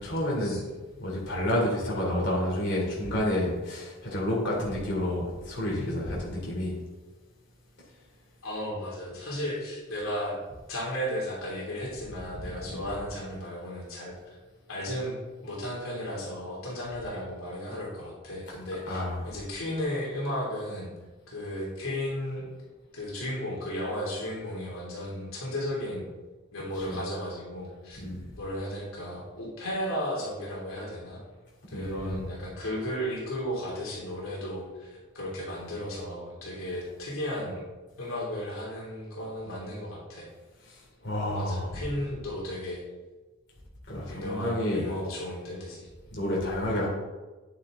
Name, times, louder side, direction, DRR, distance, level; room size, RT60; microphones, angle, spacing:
voice 1, 0.0-0.6 1.0-6.7 12.4-12.8 18.9-19.3 26.8-27.0 28.0-28.2 31.7-32.2 40.6-41.8 43.9-44.9 46.1-46.9, left 1 dB, 55° left, -4 dB, 3.1 m, -30 dB
voice 2, 8.4-10.4 10.7-14.3 14.7-15.1 15.4-20.9 21.3-22.5 22.9-26.0 26.5-28.0 28.3-31.2 31.7-34.9 35.1-37.6 38.0-40.3 41.3-42.8 44.1-45.9, equal, 80° left, -4 dB, 2.9 m, -34 dB
9.9 x 8.6 x 3.8 m, 1.2 s
head